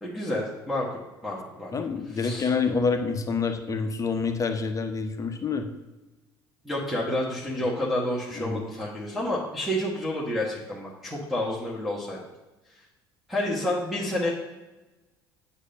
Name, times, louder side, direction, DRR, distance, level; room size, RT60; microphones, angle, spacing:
voice 1, 0.0-1.7 2.1-2.5 6.6-12.2 13.3-14.3, left 1 dB, ahead, -7 dB, 1.4 m, -29 dB
voice 2, 1.7-5.7 8.4-8.6, left 5 dB, 25° left, 7 dB, 0.8 m, -27 dB
8.2 x 2.8 x 5.3 m, 1.1 s
figure-of-eight pair, 60°, 12 cm